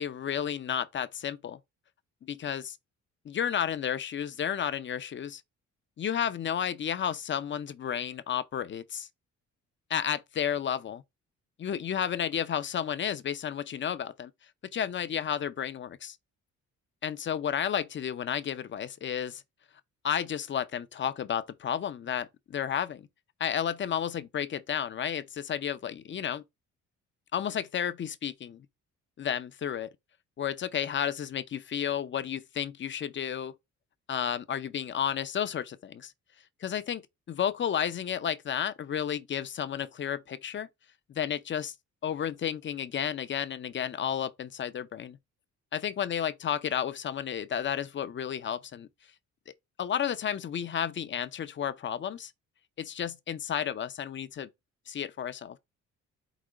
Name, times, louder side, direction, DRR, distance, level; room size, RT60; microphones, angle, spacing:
voice 1, 0.0-1.6 2.2-2.8 3.2-5.4 6.0-9.1 9.9-11.0 11.6-14.3 14.7-16.2 17.0-19.4 20.0-23.1 23.4-26.4 27.3-28.7 29.2-29.9 30.4-33.5 34.1-36.1 36.6-40.7 41.1-41.7 42.0-45.2 45.7-48.9 49.8-52.3 52.8-54.5 54.9-55.6, left 9 dB, 40° left, 0.5 m, -32 dB
4.8 x 2.2 x 4.8 m
cardioid pair, 90°, 30 cm